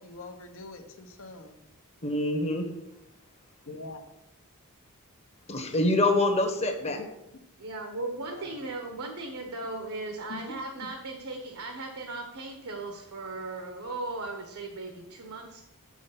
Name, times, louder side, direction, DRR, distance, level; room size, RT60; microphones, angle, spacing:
voice 1, 0.0-1.6 3.7-4.1 8.2-8.6 10.3-10.4, left 3 dB, 65° left, 5 dB, 1.2 m, -44 dB
voice 2, 2.0-2.7 5.5-7.0, left 2 dB, 30° left, 5 dB, 1.2 m, -25 dB
voice 3, 7.6-15.6, right 2 dB, 70° right, 2 dB, 1.2 m, -37 dB
7.8 x 6.2 x 5.8 m, 0.88 s
head